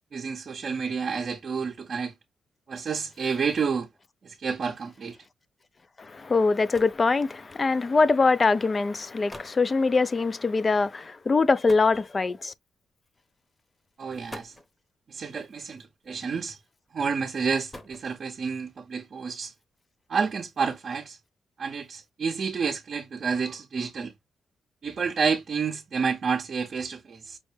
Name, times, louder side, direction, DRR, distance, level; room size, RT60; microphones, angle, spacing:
voice 1, 0.1-2.1 2.7-3.9 4.2-5.2 14.0-14.5 15.1-16.6 16.9-19.5 20.1-21.2 21.6-24.1 24.8-27.4, right 5 dB, 50° right, 0.6 m, -29 dB
voice 2, 6.0-12.5, left 4 dB, 30° left, 0.4 m, -23 dB
sound 1, 6.7-7.1 8.1-8.3 9.0-9.1 9.3-9.7 11.7-12.5 13.5-13.6 14.1-14.8 16.0-16.5 17.4-18.4, left 1 dB, 15° left, 0.8 m, -46 dB
5.3 x 2.1 x 3.2 m
cardioid pair, 110°, 0 cm